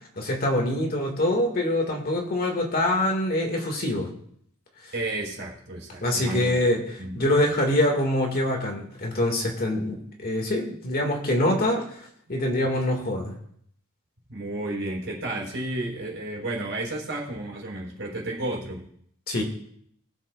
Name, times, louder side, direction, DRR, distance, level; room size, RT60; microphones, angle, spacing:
voice 1, 0.2-4.1 6.0-6.8 7.1-11.9 12.3-13.3 19.3-19.4, left 1 dB, 45° left, 1 dB, 1.8 m, -24 dB
voice 2, 4.9-6.6 7.0-7.3 14.3-18.8, right 2 dB, 55° right, -2 dB, 3.9 m, -32 dB
20.5 x 7.6 x 2.3 m, 0.66 s
head